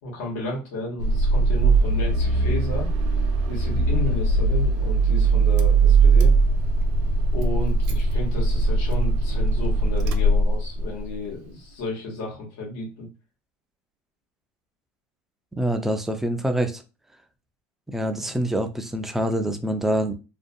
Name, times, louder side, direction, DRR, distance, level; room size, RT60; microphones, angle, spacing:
voice 1, 0.0-2.9 3.5-6.3 7.3-13.1 18.2-18.3, left 1 dB, 80° left, -3 dB, 1.1 m, -33 dB
Car / Engine starting, 1.0-11.0, right 3 dB, 75° right, 0.5 m, -20 dB
voice 2, 15.6-16.8 17.9-20.1, equal, 5° right, 6 dB, 0.3 m, -25 dB
2.5 x 2.2 x 2.6 m, 0.30 s
cardioid pair, 145°, 7 cm